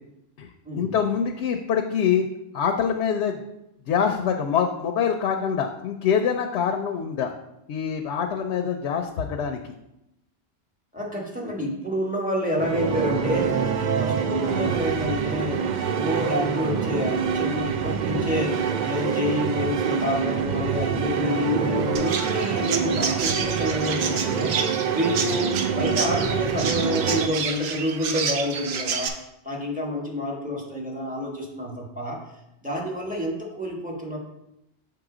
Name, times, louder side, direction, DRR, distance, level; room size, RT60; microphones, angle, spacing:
voice 1, 0.8-2.3 2.5-3.4 3.9-7.3 7.7-9.7, left 7 dB, 90° left, 5 dB, 0.9 m, -25 dB
voice 2, 10.9-13.6 14.0-15.6 15.9-29.1 29.4-32.2 32.6-34.2, left 1 dB, 10° right, -3 dB, 1.2 m, -28 dB
sound 1, 12.6-27.3, right 7 dB, 55° right, 0.5 m, -26 dB
Chirp tweet, 22.0-29.1, right 5 dB, 75° right, 0.9 m, -29 dB
6.7 x 3.8 x 4.8 m, 0.86 s
omnidirectional pair, 1.1 m